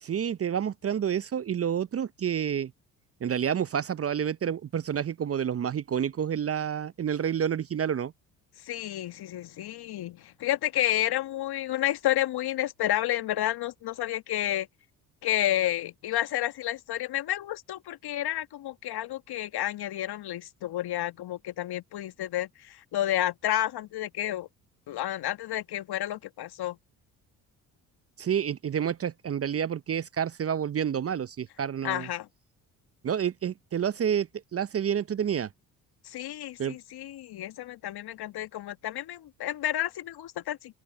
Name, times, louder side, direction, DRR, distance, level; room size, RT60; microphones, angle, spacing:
voice 1, 0.0-2.7 3.2-8.1 28.2-32.1 33.0-35.5 36.6-36.8, right 8 dB, 35° right, 0.7 m, -29 dB
voice 2, 8.6-14.7 15.2-24.5 24.9-26.8 31.8-32.3 36.0-40.8, left 13 dB, 60° left, 1.5 m, -30 dB
open air
hypercardioid pair, 55°, 43 cm